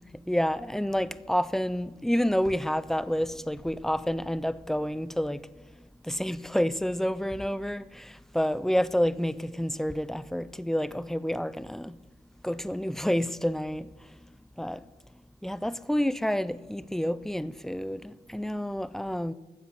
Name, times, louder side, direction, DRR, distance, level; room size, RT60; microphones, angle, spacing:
voice 1, 0.3-5.4 6.1-8.0 8.3-11.9 12.4-13.9 14.6-14.8 15.4-19.3, equal, ahead, 0.5 m, -29 dB
9.9 x 7.2 x 7.3 m
supercardioid pair, 45°, 17 cm